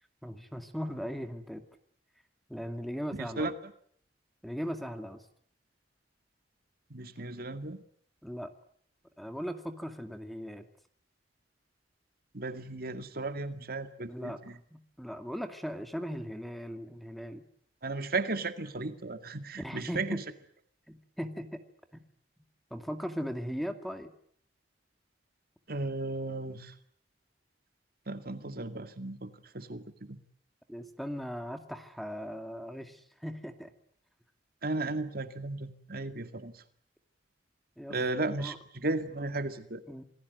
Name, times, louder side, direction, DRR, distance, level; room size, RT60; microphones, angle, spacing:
voice 1, 0.2-1.6 2.5-3.5 4.4-5.2 8.2-8.5 9.2-10.6 14.1-14.4 14.7-17.4 19.6-20.2 20.9-21.6 21.9-22.0 22.7-24.1 30.7-33.7 37.8-38.0 38.4-38.6 39.9-40.0, equal, ahead, 7 dB, 2.3 m, -38 dB
voice 2, 3.2-3.5 6.9-7.8 12.3-14.5 17.8-20.2 25.7-26.7 28.1-29.8 30.1-30.2 34.6-36.6 37.9-39.8, right 2 dB, 60° right, 9 dB, 2.1 m, -35 dB
28.0 x 19.5 x 9.4 m, 0.63 s
head